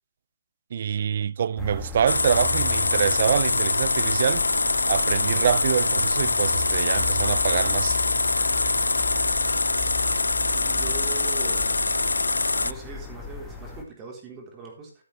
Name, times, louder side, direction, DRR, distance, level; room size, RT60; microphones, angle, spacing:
voice 1, 0.7-4.5 4.9-8.0, right 8 dB, 45° right, 0.6 m, -25 dB
sound 1, 1.6-13.8, left 4 dB, 5° left, 2.1 m, -37 dB
sound 2, 2.1-12.7, left 3 dB, 90° left, 0.5 m, -24 dB
voice 2, 10.5-11.9 12.6-15.0, right 4 dB, 15° right, 3.9 m, -41 dB
14.0 x 8.4 x 3.3 m
hypercardioid pair, 155°, 0 cm